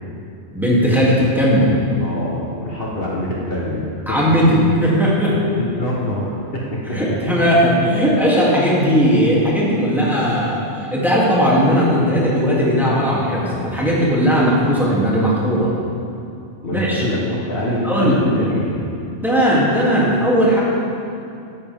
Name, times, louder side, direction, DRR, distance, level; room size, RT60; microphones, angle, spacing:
voice 1, 0.5-1.7 4.1-5.4 6.9-15.7 16.7-17.0 17.8-18.2 19.2-20.6, equal, ahead, -7 dB, 2.8 m, -17 dB
voice 2, 2.0-4.1 5.5-6.6 6.9-7.0 16.6-18.8, left 1 dB, 55° left, -4 dB, 1.6 m, -24 dB
14.0 x 11.0 x 3.7 m, 2.6 s
omnidirectional pair, 1.2 m